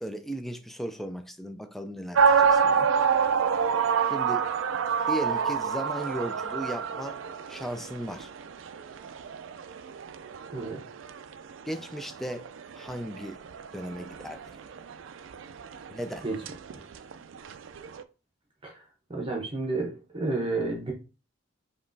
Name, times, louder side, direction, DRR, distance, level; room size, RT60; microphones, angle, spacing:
voice 1, 0.0-2.9 4.1-4.5 5.1-7.2 7.5-8.3 11.6-12.5 12.7-13.5 13.7-14.6 15.9-16.2, right 1 dB, ahead, 0.4 m, -36 dB
sound 1, 2.2-18.0, right 6 dB, 80° right, 0.4 m, -28 dB
voice 2, 10.5-10.8 16.2-16.4 18.6-18.8 19.1-20.9, right 2 dB, 30° right, 0.9 m, -31 dB
5.2 x 3.0 x 2.6 m
head